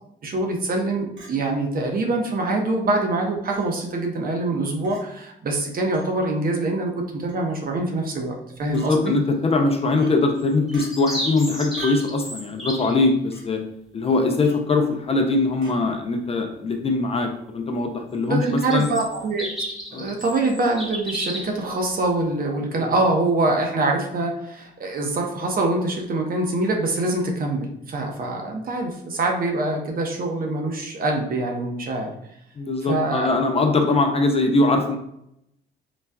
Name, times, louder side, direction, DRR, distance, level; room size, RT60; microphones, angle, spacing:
voice 1, 0.2-9.1 18.3-19.5 19.9-32.1 32.9-33.3, right 2 dB, 45° right, 1 dB, 0.7 m, -24 dB
Chink clink, 1.2-1.3 2.3-2.4 3.5-3.7 4.8-5.0 5.9-6.1 7.3-7.5 8.7-8.9 10.0-10.1 10.7-10.9 11.8-12.1 13.3-13.5 14.4-14.7 15.6-15.8, right 3 dB, 80° right, 1.4 m, -41 dB
voice 2, 8.6-13.6 13.9-18.9 19.9-20.1 22.7-22.9 32.6-35.0, left 3 dB, 30° left, 3 dB, 0.4 m, -22 dB
sound 1, 10.4-12.9 18.4-21.6, equal, ahead, 1.0 m, -33 dB
4.0 x 2.2 x 2.2 m, 0.77 s
cardioid pair, 90°, 20 cm